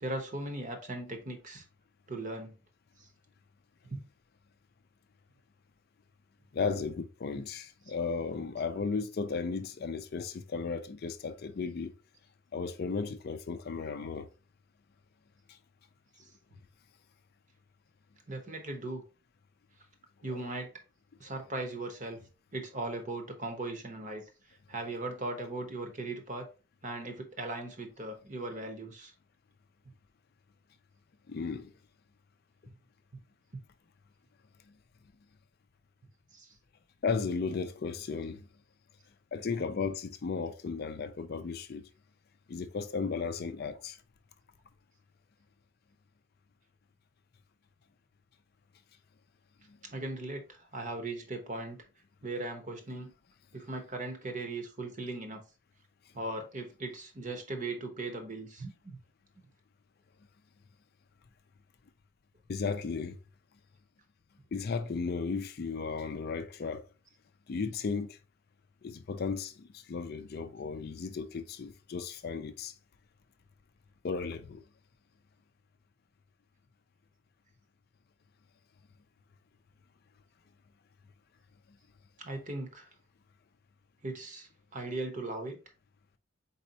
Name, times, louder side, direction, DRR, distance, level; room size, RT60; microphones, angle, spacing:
voice 1, 0.0-1.6 2.1-2.6 3.0-3.1 3.9-4.1 16.2-16.3 18.3-19.0 20.2-20.7 21.2-22.2 22.5-24.2 24.7-26.5 26.8-29.1 33.5-33.6 36.3-36.5 49.8-51.8 52.2-53.1 53.5-55.4 56.1-59.0 82.2-82.9 84.0-85.6, right 2 dB, 35° right, 0.9 m, -38 dB
voice 2, 6.5-11.9 12.5-14.3 15.5-15.6 20.3-20.4 31.3-31.7 37.0-38.5 39.3-41.9 42.5-44.0 49.7-49.8 62.5-63.2 64.5-66.8 67.5-68.2 68.8-72.7 74.0-74.6, left 5 dB, 45° left, 0.4 m, -35 dB
4.3 x 4.1 x 2.8 m
head